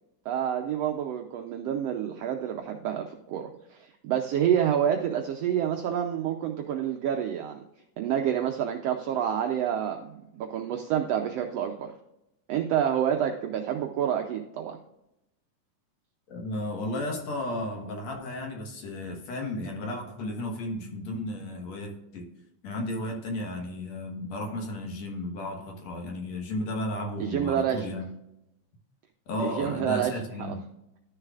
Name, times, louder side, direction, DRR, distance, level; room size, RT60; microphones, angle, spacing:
voice 1, 0.2-7.6 8.0-11.9 12.5-14.8 27.2-27.9 29.4-30.1, right 9 dB, 80° right, 4 dB, 1.4 m, -28 dB
voice 2, 16.3-22.3 22.6-28.0 29.3-30.6, left 1 dB, 60° left, 1 dB, 2.5 m, -34 dB
12.5 x 6.6 x 2.4 m, 0.87 s
omnidirectional pair, 3.6 m